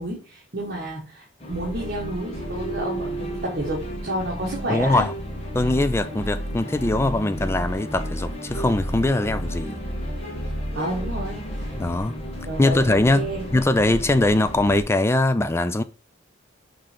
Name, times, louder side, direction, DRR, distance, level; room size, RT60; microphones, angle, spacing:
voice 1, 0.0-5.1 10.7-11.8 12.4-13.5, right 1 dB, 50° right, 1.4 m, -30 dB
sound 1, 1.4-14.8, equal, 30° left, 1.4 m, -32 dB
sound 2, 2.3-12.0, right 3 dB, 55° left, 1.1 m, -41 dB
voice 2, 4.7-5.1 5.5-9.8 11.8-12.2 12.6-15.8, left 2 dB, 10° left, 0.3 m, -21 dB
6.0 x 3.2 x 5.0 m
head